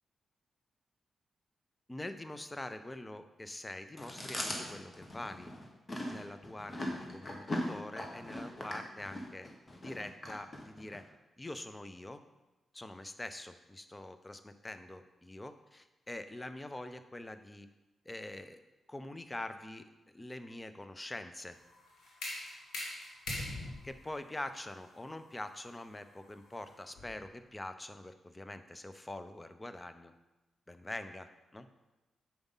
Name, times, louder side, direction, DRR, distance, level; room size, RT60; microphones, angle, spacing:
voice 1, 1.9-5.5 6.0-9.5 9.8-11.0 11.4-12.2 12.7-17.7 18.1-18.6 18.9-21.6 23.8-30.1 30.7-31.7, left 1 dB, 20° left, 10 dB, 0.7 m, -44 dB
Chewing mastication, 4.0-11.0, left 1 dB, 40° left, 1.4 m, -40 dB
sound 1, 21.5-27.3, left 1 dB, 80° left, 1.8 m, -44 dB
7.2 x 5.2 x 4.0 m, 1.1 s
supercardioid pair, 40°, 0 cm